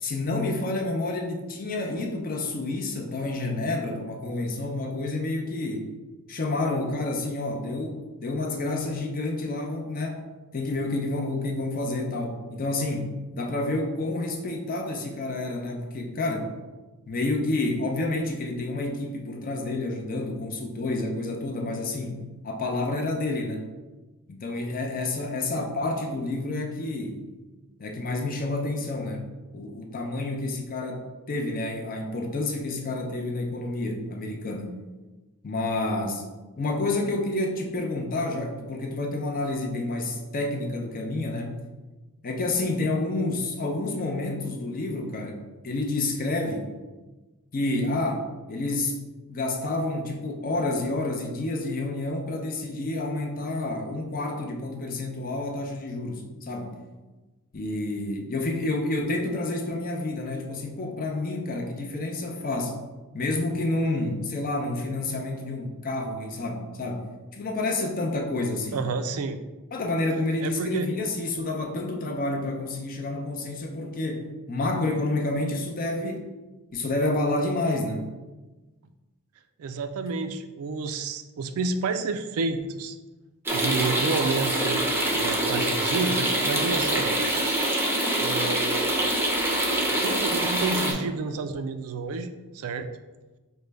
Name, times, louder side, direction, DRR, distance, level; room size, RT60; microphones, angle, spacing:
voice 1, 0.0-5.9 6.3-10.3 10.5-16.5 17.1-23.6 24.3-27.2 27.8-29.2 29.5-34.7 35.4-36.3 36.6-41.6 42.2-45.4 45.6-46.7 47.5-49.0 49.3-56.8 57.5-62.8 63.1-67.1 67.3-68.8 69.7-76.3 76.7-78.0, left 2 dB, 40° left, 2 dB, 0.5 m, -29 dB
voice 2, 68.7-69.4 70.4-70.9 79.6-83.0 83.5-84.9 85.2-87.2 88.2-88.8 90.0-92.9, right 4 dB, 70° right, 9 dB, 0.3 m, -30 dB
sound 1, 83.5-90.9, right 1 dB, 10° right, 0.6 m, -25 dB
5.0 x 2.2 x 3.3 m, 1.2 s
head